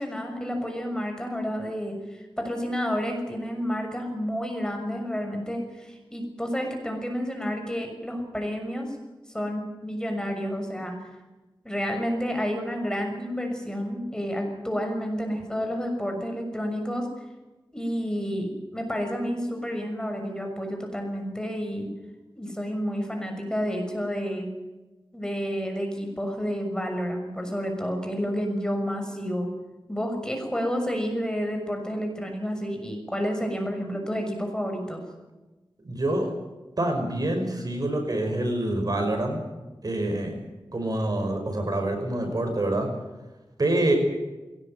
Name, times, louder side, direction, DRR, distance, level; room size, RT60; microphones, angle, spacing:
voice 1, 0.0-9.0 9.3-10.9 11.6-17.1 17.7-21.9 22.3-24.5 25.1-29.5 29.9-35.0, equal, 10° left, 3 dB, 6.5 m, -30 dB
voice 2, 35.8-36.3 36.8-39.4 39.8-40.3 40.7-42.9 43.6-44.0, right 1 dB, 50° right, 4 dB, 5.6 m, -26 dB
22.0 x 18.0 x 9.1 m, 1.1 s
wide cardioid pair, 85°, 9 cm